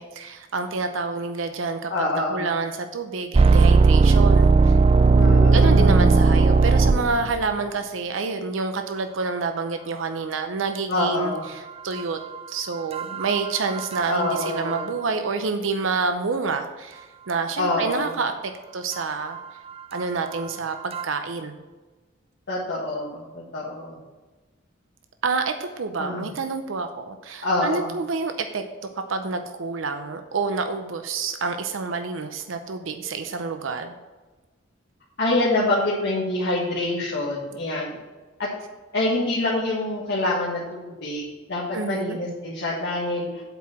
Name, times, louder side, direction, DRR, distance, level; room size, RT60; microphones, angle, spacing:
voice 1, 0.0-4.8 5.5-12.2 12.5-18.3 18.7-19.4 19.9-21.6 25.2-28.6 29.1-33.9 41.7-42.2, right 4 dB, 80° right, 7 dB, 0.6 m, -28 dB
voice 2, 1.9-2.5 5.1-6.1 10.9-11.5 14.1-14.9 17.6-18.2 22.5-24.0 26.0-26.3 27.4-27.9 35.2-38.0 38.4-38.5 38.9-43.4, left 2 dB, 60° left, -6 dB, 1.7 m, -26 dB
sound 1, 3.3-7.4 12.9-14.4 14.7-14.8 20.9-21.0, right 4 dB, 30° right, 0.3 m, -16 dB
7.8 x 4.7 x 7.1 m, 1.3 s
head